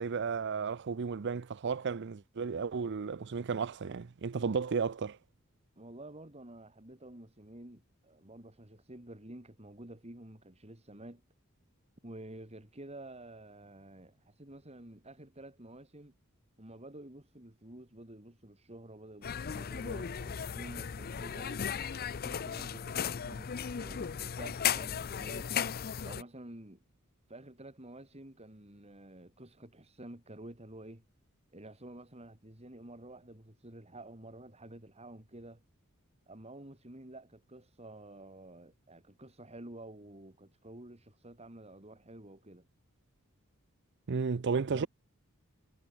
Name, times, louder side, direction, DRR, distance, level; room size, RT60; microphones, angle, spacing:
voice 1, 0.0-5.2 44.1-44.9, right 5 dB, 55° right, 0.5 m, -33 dB
voice 2, 5.8-11.2 12.0-16.1 16.6-21.7 22.0-25.5 26.0-26.8 27.3-31.0 31.5-35.6 36.3-42.6 44.7-44.9, right 1 dB, 30° right, 3.3 m, -50 dB
sound 1, 19.2-26.2, left 8 dB, 45° left, 0.5 m, -36 dB
head